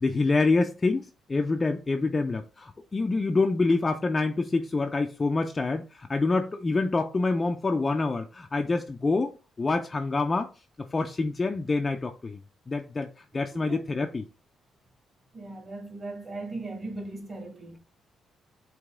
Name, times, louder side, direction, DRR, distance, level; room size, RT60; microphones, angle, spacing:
voice 1, 0.0-9.3 9.6-10.5 10.9-12.4 12.7-13.1 13.3-14.2, left 3 dB, 25° left, 0.4 m, -26 dB
voice 2, 15.3-17.8, right 2 dB, 35° right, 1.9 m, -38 dB
4.8 x 2.9 x 3.5 m
cardioid pair, 90°, 0 cm